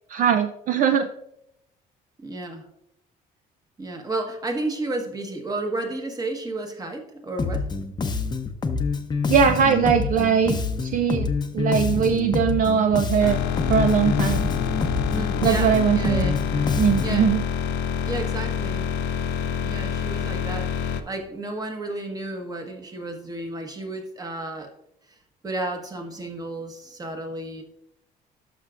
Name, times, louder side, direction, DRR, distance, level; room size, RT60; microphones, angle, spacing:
voice 1, 0.1-1.1 9.3-11.3 11.5-13.4 13.7-14.5 15.4-16.3 16.8-17.4, right 7 dB, 50° right, 8 dB, 0.5 m, -21 dB
voice 2, 2.2-2.6 3.8-7.7 15.1-16.4 17.0-17.3 18.0-18.9 19.4-24.7 25.1-25.2 25.4-27.6, right 2 dB, 20° right, 3 dB, 1.4 m, -32 dB
Bass guitar, 7.4-17.3, left 4 dB, 25° left, 0.7 m, -26 dB
sound 1, 13.2-21.0, left 7 dB, 85° left, 0.6 m, -27 dB
12.0 x 5.8 x 2.5 m, 0.80 s
cardioid pair, 110°, 17 cm